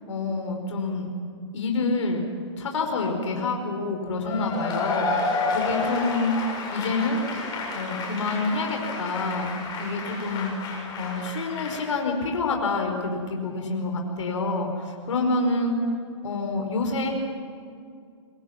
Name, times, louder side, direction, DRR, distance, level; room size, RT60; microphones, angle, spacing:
voice 1, 0.1-1.1 1.5-2.3 2.6-6.3 6.7-7.2 7.7-10.5 11.0-15.8 16.2-17.1, left 3 dB, 80° left, 3 dB, 5.1 m, -27 dB
Cheering / Applause / Crowd, 4.2-11.9, left 3 dB, 25° left, 7.5 m, -31 dB
27.5 x 25.5 x 6.1 m, 2.3 s
hypercardioid pair, 135°, 16 cm